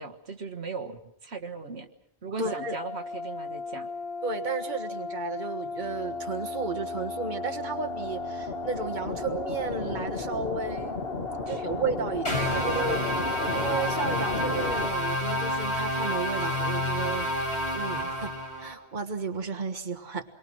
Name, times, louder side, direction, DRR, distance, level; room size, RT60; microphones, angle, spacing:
voice 1, 0.0-1.9 2.2-3.9 11.3-11.8 12.5-13.0, right 4 dB, 75° right, 4 dB, 1.8 m, -38 dB
sound 1, 2.4-14.9, left 3 dB, 60° left, 1.8 m, -34 dB
voice 2, 2.4-2.8 4.2-11.0 11.5-13.0 13.5-17.3 17.7-18.3 18.6-20.2, right 5 dB, 45° right, 3 dB, 1.7 m, -33 dB
sound 2, 12.3-18.7, left 1 dB, 85° left, 6.5 m, -29 dB
28.0 x 23.0 x 6.3 m, 0.75 s
omnidirectional pair, 1.1 m